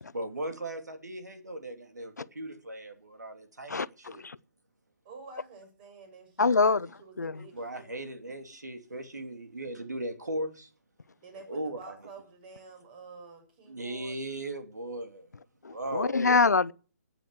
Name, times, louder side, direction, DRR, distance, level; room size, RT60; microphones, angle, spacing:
voice 1, 0.1-3.7 4.1-4.2 7.5-10.7 11.5-12.0 13.7-15.3 15.7-16.2, right 1 dB, 90° right, 2.9 m, -37 dB
voice 2, 3.7-4.4 6.4-6.9 7.2-7.5 15.6-16.7, left 4 dB, 85° left, 0.7 m, -25 dB
voice 3, 5.0-6.7 7.0-7.9 11.2-14.2, right 4 dB, 35° right, 6.7 m, -49 dB
14.0 x 9.1 x 6.3 m
figure-of-eight pair, 145°, 9 cm